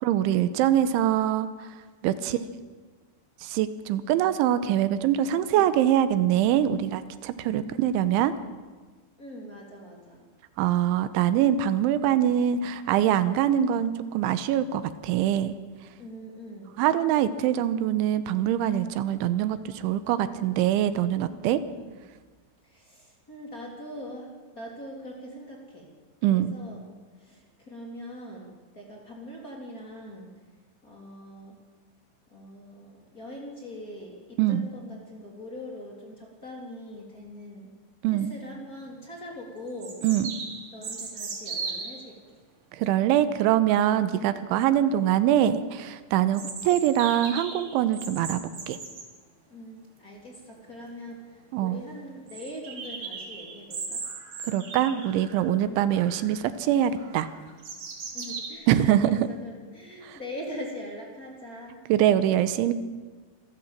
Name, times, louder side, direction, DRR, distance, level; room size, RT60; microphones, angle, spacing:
voice 1, 0.0-1.7 2.0-2.4 3.4-8.3 10.6-15.6 16.8-21.6 26.2-26.6 34.4-34.7 38.0-38.3 40.0-40.4 42.8-48.4 48.7-48.8 51.5-51.8 54.5-57.3 58.7-59.3 60.1-60.2 61.9-62.7, right 11 dB, 90° right, 12 dB, 3.3 m, -24 dB
voice 2, 9.2-10.2 12.4-12.7 16.0-16.8 20.1-20.3 21.2-21.5 21.7-21.9 22.7-25.9 26.3-26.8 27.2-28.5 28.7-30.3 30.8-31.6 32.3-37.7 38.1-40.0 40.7-42.1 43.9-44.4 48.2-48.6 49.5-54.0 55.6-56.0 56.9-57.1 58.1-61.8, equal, 20° left, -1 dB, 3.4 m, -42 dB
sound 1, 38.8-38.9 39.8-42.0 46.3-49.1 50.7-50.8 51.1-51.2 51.5-51.6 52.3-55.5 55.9-56.4 57.0-58.5, right 4 dB, 45° right, 3.6 m, -38 dB
26.5 x 15.0 x 7.5 m, 1.4 s
omnidirectional pair, 5.4 m